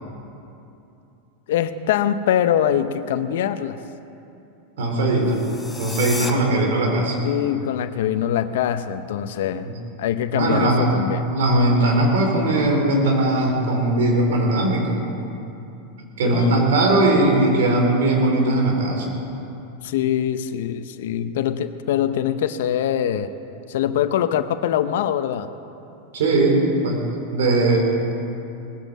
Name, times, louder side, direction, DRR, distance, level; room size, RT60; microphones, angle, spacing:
voice 1, 1.5-3.8 7.2-9.7 10.0-11.2 16.2-16.5 19.8-23.3 23.7-25.5, left 10 dB, 75° left, 10 dB, 0.7 m, -23 dB
voice 2, 4.8-5.4 5.8-7.2 9.6-9.7 10.3-10.9 11.3-15.0 16.2-19.1 26.1-27.0 27.3-27.8, right 2 dB, 75° right, 1 dB, 3.6 m, -19 dB
sound 1, 5.2-6.3, left 2 dB, 5° left, 1.2 m, -32 dB
19.5 x 8.0 x 7.4 m, 2.8 s
hypercardioid pair, 115°, 0 cm